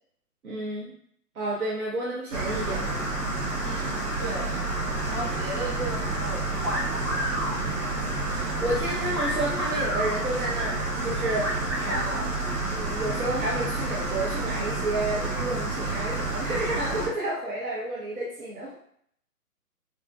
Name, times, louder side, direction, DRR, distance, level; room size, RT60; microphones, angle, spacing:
voice 1, 0.4-0.9 1.3-3.0 8.3-12.3 12.7-18.7, right 1 dB, 65° right, -5 dB, 1.0 m, -31 dB
sound 1, 2.3-17.1, right 2 dB, 90° right, 1.2 m, -29 dB
voice 2, 3.6-3.9 4.2-4.5 5.1-7.2, right 1 dB, 45° right, -5 dB, 1.4 m, -35 dB
sound 2, 6.6-7.5 9.1-10.1 11.4-12.1, equal, 20° right, 0.5 m, -31 dB
3.5 x 2.7 x 2.3 m, 0.65 s
hypercardioid pair, 145°, 46 cm